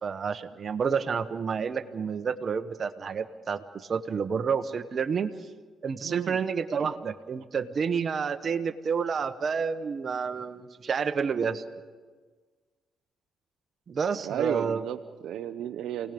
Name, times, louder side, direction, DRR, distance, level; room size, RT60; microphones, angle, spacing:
voice 1, 0.0-5.3 5.8-11.6 13.9-14.8, right 6 dB, 45° right, 8 dB, 1.2 m, -29 dB
voice 2, 6.0-6.4 6.8-6.9 14.2-16.1, right 11 dB, 80° right, 9 dB, 0.7 m, -34 dB
29.0 x 18.5 x 5.3 m, 1.4 s
cardioid pair, 90°, 0 cm